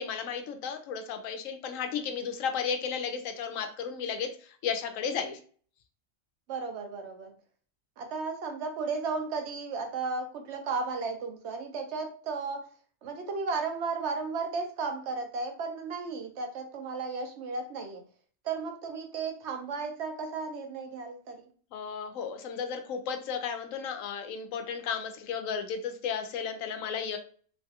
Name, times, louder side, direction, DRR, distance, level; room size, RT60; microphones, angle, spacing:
voice 1, 0.0-5.4 21.7-27.2, left 6 dB, 90° left, 6 dB, 1.0 m, -34 dB
voice 2, 6.5-7.3 8.0-12.6 13.0-18.0 18.4-21.5, right 4 dB, 65° right, 4 dB, 0.8 m, -34 dB
3.1 x 2.3 x 2.7 m, 0.44 s
omnidirectional pair, 1.3 m